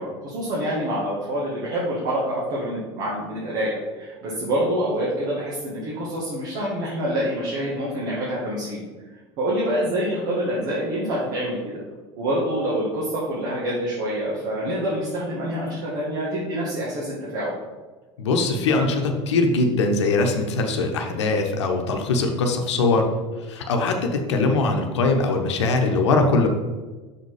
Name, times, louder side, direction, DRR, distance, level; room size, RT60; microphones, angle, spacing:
voice 1, 0.0-8.8 9.4-11.8 12.2-17.5, equal, 65° right, -6 dB, 1.9 m, -26 dB
voice 2, 18.2-23.1 23.4-26.5, left 3 dB, 90° left, 4 dB, 0.8 m, -21 dB
5.8 x 4.2 x 4.8 m, 1.3 s
hypercardioid pair, 95°, 14 cm